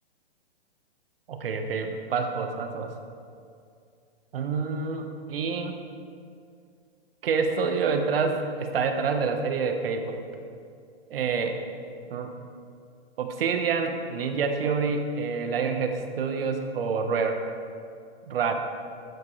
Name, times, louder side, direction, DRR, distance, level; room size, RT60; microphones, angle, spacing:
voice 1, 1.3-2.9 4.3-5.7 7.2-10.2 11.1-11.6 12.1-12.3 13.2-17.4 18.3-18.5, right 5 dB, 60° right, 5 dB, 1.3 m, -27 dB
13.0 x 9.5 x 3.3 m, 2.3 s
hypercardioid pair, 155°, 32 cm